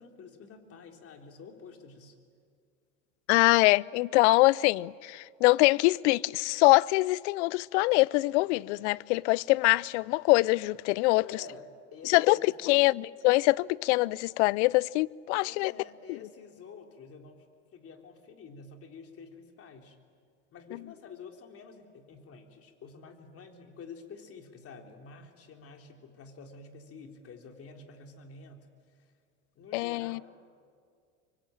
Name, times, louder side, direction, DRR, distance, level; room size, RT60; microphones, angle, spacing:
voice 1, 0.0-2.2 11.2-13.0 15.4-17.5 17.7-20.0 20.5-28.7 29.0-29.1 29.6-30.2, left 5 dB, 35° left, 3.8 m, -49 dB
voice 2, 3.3-11.2 12.0-15.7 29.7-30.2, left 22 dB, 60° left, 0.6 m, -24 dB
25.0 x 24.0 x 9.0 m
hypercardioid pair, 95°, 39 cm